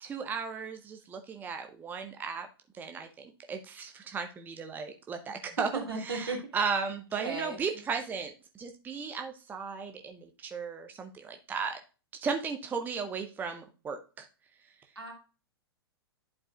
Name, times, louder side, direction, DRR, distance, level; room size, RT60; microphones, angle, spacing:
voice 1, 0.0-2.5 2.8-11.8 12.2-14.3, right 5 dB, 15° right, 5 dB, 0.7 m, -36 dB
voice 2, 5.2-6.4 7.2-7.8 14.9-15.1, right 3 dB, 75° right, -1 dB, 2.9 m, -36 dB
11.0 x 4.8 x 2.4 m, 0.32 s
figure-of-eight pair, 105°, 13 cm